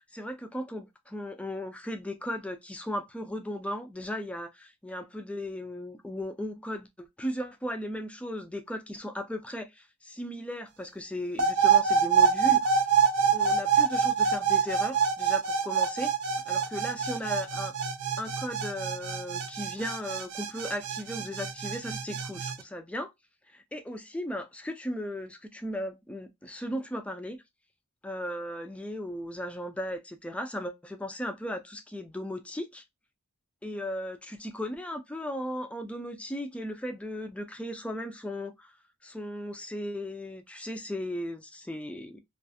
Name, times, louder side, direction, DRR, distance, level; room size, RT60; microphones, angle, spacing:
voice 1, 0.1-12.7 13.3-16.1 16.5-17.7 18.2-23.1 23.5-27.4 28.0-32.8 33.6-38.7 39.0-42.2, left 1 dB, 5° left, 0.3 m, -36 dB
sound 1, 11.4-22.5, right 6 dB, 80° right, 0.4 m, -26 dB
2.4 x 2.3 x 2.5 m
head